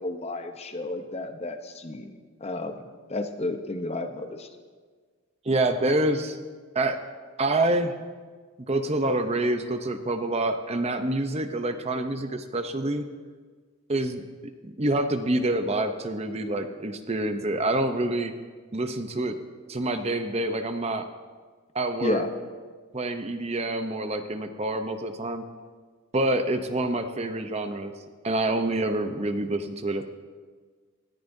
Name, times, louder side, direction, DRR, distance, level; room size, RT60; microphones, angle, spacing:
voice 1, 0.0-2.1 2.4-2.8 3.1-4.5 22.0-22.4, left 2 dB, 30° left, 7 dB, 0.7 m, -31 dB
voice 2, 5.4-6.4 6.7-7.0 7.4-7.9 8.7-13.1 13.9-18.3 18.7-19.4 19.7-21.1 21.7-22.2 22.9-25.4 26.1-27.9 28.2-30.0, right 2 dB, 30° right, 8 dB, 0.6 m, -27 dB
19.0 x 14.0 x 2.7 m, 1.5 s
head